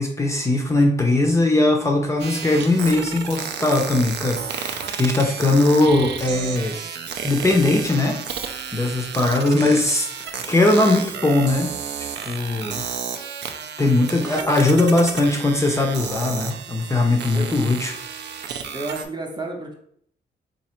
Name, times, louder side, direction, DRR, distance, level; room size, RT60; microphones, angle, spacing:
voice 1, 0.0-6.8 7.2-11.7 12.2-12.8 13.8-17.9, left 2 dB, 15° left, 1 dB, 0.5 m, -20 dB
sound 1, 2.2-19.0, right 7 dB, 75° right, 0.5 m, -32 dB
voice 2, 18.7-19.7, right 2 dB, 25° right, 2 dB, 0.6 m, -31 dB
4.1 x 2.7 x 4.3 m, 0.66 s
wide cardioid pair, 180°, 18 cm